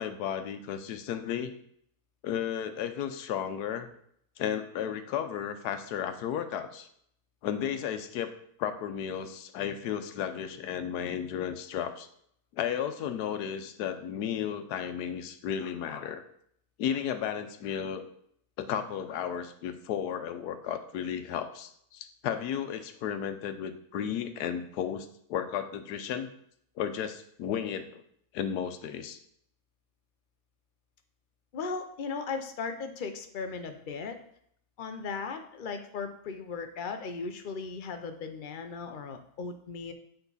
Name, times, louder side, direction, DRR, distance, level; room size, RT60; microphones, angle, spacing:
voice 1, 0.0-1.5 2.2-3.9 4.4-6.9 7.4-8.3 8.6-12.1 12.5-16.2 16.8-18.0 18.6-26.3 26.8-28.0 28.3-29.2, left 9 dB, 80° left, 9 dB, 1.2 m, -33 dB
voice 2, 31.5-34.2 34.8-39.9, left 5 dB, 60° left, 6 dB, 0.5 m, -37 dB
8.2 x 4.0 x 4.0 m, 0.67 s
omnidirectional pair, 1.7 m